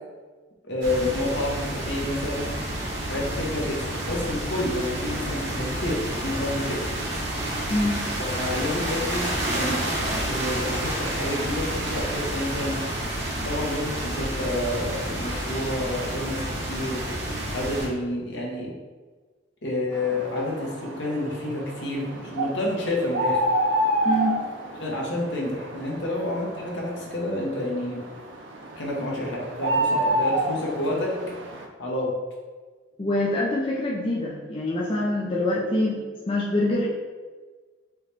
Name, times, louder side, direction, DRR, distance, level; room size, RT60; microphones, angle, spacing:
voice 1, 0.7-2.5 3.0-6.9 8.2-12.8 13.4-17.1 17.5-18.7 19.6-23.4 24.8-28.0 28.8-31.2 31.8-32.1, left 1 dB, 65° left, -3 dB, 1.2 m, -29 dB
sound 1, 0.8-17.9, right 1 dB, 60° right, 1.2 m, -29 dB
sound 2, 19.9-31.7, right 1 dB, 80° right, 0.6 m, -29 dB
voice 2, 24.0-24.4 33.0-36.0 36.3-36.9, left 1 dB, 30° left, -4 dB, 0.5 m, -25 dB
4.8 x 3.2 x 3.4 m, 1.4 s
head